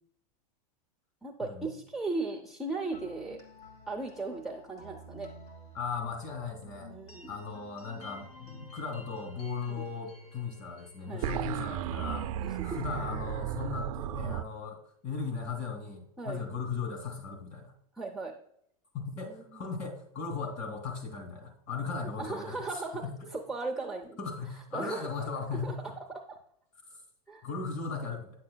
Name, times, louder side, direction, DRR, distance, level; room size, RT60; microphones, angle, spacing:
voice 1, 1.2-3.4 3.9-5.3 6.9-7.4 9.7-9.9 11.0-11.5 12.4-12.8 16.2-16.4 18.0-18.3 19.2-19.6 22.2-23.0 23.3-24.2 24.7-25.8 26.1-26.4 27.3-27.5, right 3 dB, ahead, 0 dB, 0.5 m, -37 dB
sound 1, 2.9-12.7, left 1 dB, 70° left, 2.4 m, -51 dB
voice 2, 5.7-6.9 7.3-12.3 12.6-17.7 18.9-23.3 24.2-25.9 26.9-27.0 27.4-28.3, left 5 dB, 40° left, 4 dB, 2.4 m, -37 dB
sound 2, 11.2-14.4, right 11 dB, 60° right, 0.4 m, -34 dB
9.6 x 7.4 x 2.2 m, 0.73 s
supercardioid pair, 150°, 20 cm